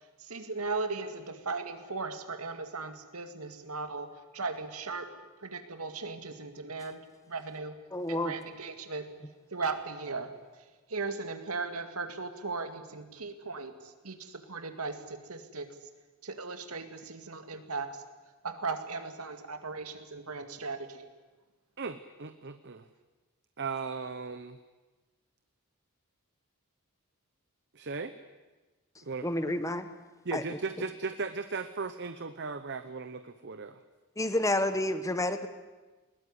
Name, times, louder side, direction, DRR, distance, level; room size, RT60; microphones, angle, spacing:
voice 1, 0.2-5.1 5.4-7.8 8.1-9.1 9.5-10.3 10.9-15.7 16.2-18.0 18.4-21.0, right 4 dB, 85° right, 7 dB, 2.2 m, -37 dB
voice 2, 7.9-8.3 29.2-29.9 30.3-30.4 34.2-35.5, left 1 dB, 15° left, 10 dB, 1.1 m, -29 dB
voice 3, 21.8-22.8 23.6-24.6 27.7-28.1 29.0-29.3 30.2-33.8, right 4 dB, 50° right, 10 dB, 0.9 m, -37 dB
20.5 x 20.0 x 9.8 m, 1.2 s
head